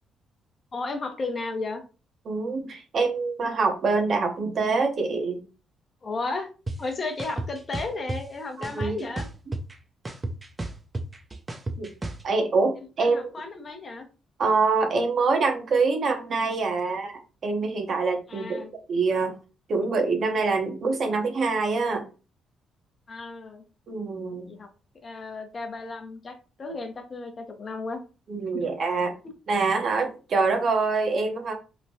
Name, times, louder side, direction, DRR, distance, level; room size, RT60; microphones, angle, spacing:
voice 1, 0.7-1.8 6.0-6.5 6.8-9.3 12.8-14.1 18.3-18.7 23.1-23.6 24.5-24.7 25.0-28.0 28.5-28.6 29.2-29.3, left 3 dB, 40° left, 6 dB, 0.6 m, -34 dB
voice 2, 2.3-5.4 8.6-9.0 11.8-11.9 12.2-13.3 14.4-19.3 19.7-22.1 23.9-24.5 28.3-29.1 29.5-31.5, right 4 dB, 55° right, 3 dB, 0.7 m, -25 dB
sound 1, 6.7-6.8 7.2-8.2 8.6-9.7 10.1-12.2, right 2 dB, 20° right, 0.4 m, -32 dB
3.0 x 2.2 x 2.6 m, 0.33 s
cardioid pair, 90°, 0 cm